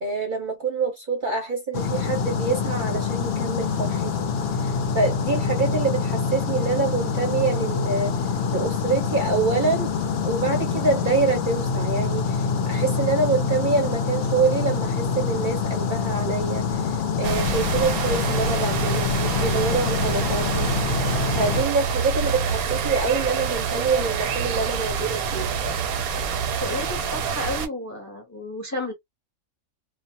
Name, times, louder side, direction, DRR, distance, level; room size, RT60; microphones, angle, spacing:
voice 1, 0.0-4.3 4.6-8.1 8.5-9.9 10.2-20.7 21.3-25.5, right 4 dB, 45° right, 0.7 m, -26 dB
sound 1, 1.7-21.6, left 5 dB, 65° left, 0.6 m, -25 dB
sound 2, 17.2-27.7, right 6 dB, 85° right, 1.1 m, -27 dB
voice 2, 26.6-28.9, left 1 dB, 20° left, 0.5 m, -32 dB
2.3 x 2.1 x 2.6 m
omnidirectional pair, 1.5 m